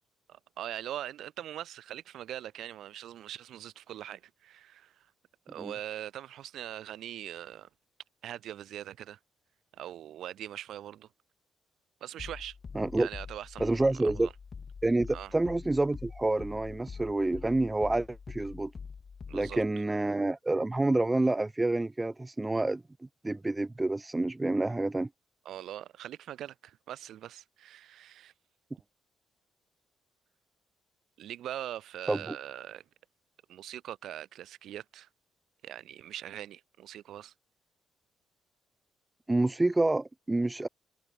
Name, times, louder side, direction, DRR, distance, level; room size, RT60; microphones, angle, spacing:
voice 1, 0.3-5.1 5.5-7.7 8.2-9.2 9.7-11.1 12.0-12.6 13.0-14.3 15.1-15.3 19.3-19.6 25.4-28.3 31.2-32.8 33.5-35.1 35.6-37.3, right 12 dB, 75° right, 3.0 m, -42 dB
sound 1, 12.2-19.7, left 5 dB, 40° left, 6.5 m, -45 dB
voice 2, 12.7-13.1 13.6-14.3 14.8-18.7 19.3-22.8 23.2-25.1 32.1-32.4 39.3-40.7, right 2 dB, 15° right, 0.4 m, -28 dB
cardioid pair, 90°, 0 cm